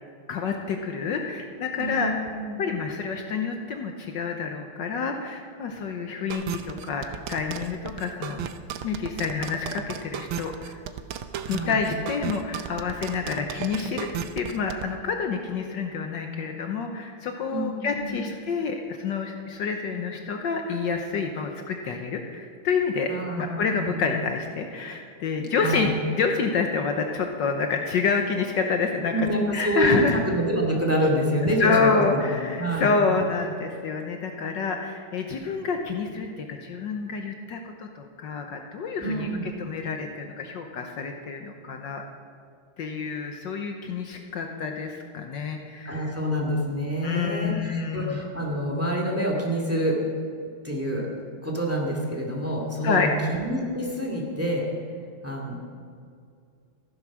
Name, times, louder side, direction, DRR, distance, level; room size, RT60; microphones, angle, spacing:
voice 1, 0.3-2.3 2.6-8.5 8.8-10.8 11.5-23.1 23.4-29.1 29.5-30.2 31.4-42.0 42.8-46.1 47.0-48.2 52.8-53.1, left 5 dB, 65° left, 4 dB, 1.5 m, -28 dB
voice 2, 1.8-2.6 11.4-11.8 17.5-18.2 23.1-24.1 25.6-25.9 29.1-32.9 39.0-39.5 45.9-50.0 50.6-54.6 55.2-55.6, right 1 dB, 5° right, -1 dB, 2.2 m, -27 dB
sound 1, 6.3-14.9, right 9 dB, 80° right, 1.5 m, -34 dB
14.5 x 11.0 x 6.2 m, 2.3 s
omnidirectional pair, 2.2 m